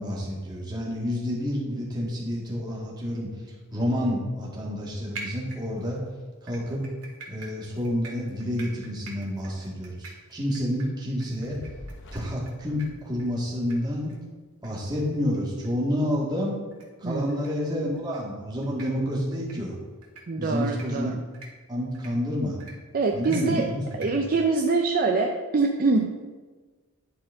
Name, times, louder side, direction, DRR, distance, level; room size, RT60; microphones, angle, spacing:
voice 1, 0.0-3.3 3.7-6.1 6.4-6.8 7.3-11.6 12.1-14.2 14.6-16.6 17.0-19.7 20.4-21.2 21.7-22.6 23.1-24.2, equal, 20° right, -5 dB, 1.8 m, -29 dB
sound 1, 5.1-6.0 6.5-12.5 12.8-12.9 13.2-13.3 13.7-13.8 14.1-14.2 14.6-14.7 15.1-15.2 15.6-15.7 16.7-16.8 17.3-17.5 18.0-18.2 18.6-18.9 19.3-19.6 20.0-20.2 20.7-20.9 21.3-21.5 21.9-22.1 22.6-22.7 23.2-23.4 23.9-24.1 24.6-24.7, right 3 dB, 85° right, 1.7 m, -43 dB
Fire, 11.4-13.8, left 1 dB, 55° left, 0.9 m, -45 dB
voice 2, 17.0-17.4 17.7-18.0 20.3-21.2 22.9-23.7 24.0-26.1, right 3 dB, 40° right, 2 dB, 0.5 m, -25 dB
10.0 x 4.4 x 3.7 m, 1.4 s
head